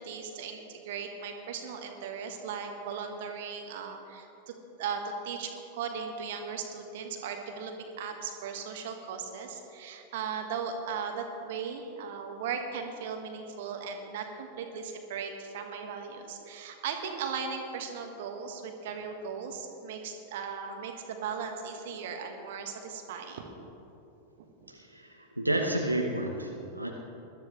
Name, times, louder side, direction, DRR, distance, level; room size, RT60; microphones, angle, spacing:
voice 1, 0.0-4.3 4.8-23.4, right 6 dB, 55° right, 4 dB, 1.6 m, -37 dB
voice 2, 24.7-26.9, right 1 dB, 90° right, 0 dB, 1.0 m, -31 dB
21.0 x 13.0 x 3.2 m, 2.9 s
figure-of-eight pair, 90°, 0 cm